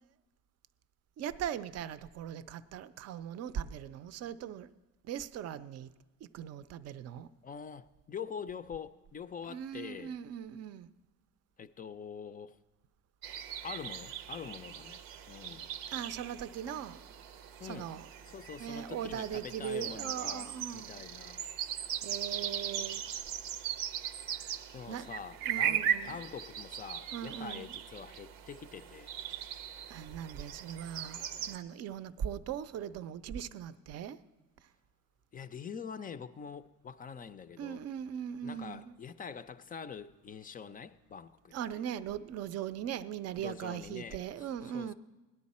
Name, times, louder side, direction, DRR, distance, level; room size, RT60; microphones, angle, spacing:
voice 1, 1.2-4.7 5.0-5.9 6.3-7.3 9.5-10.9 15.9-17.0 17.6-18.1 18.6-20.9 22.0-23.1 24.9-25.1 25.5-26.2 27.1-27.7 29.9-34.2 37.6-38.9 41.5-44.9, right 9 dB, 50° right, 0.5 m, -39 dB
voice 2, 7.4-10.1 11.6-12.6 13.6-15.7 16.7-16.8 17.6-17.9 18.3-21.4 24.7-29.1 35.3-37.8 38.4-41.5 43.4-44.9, left 7 dB, 25° left, 0.4 m, -45 dB
sound 1, 13.2-31.6, right 9 dB, 85° right, 0.7 m, -39 dB
18.0 x 10.5 x 4.2 m
cardioid pair, 105°, 33 cm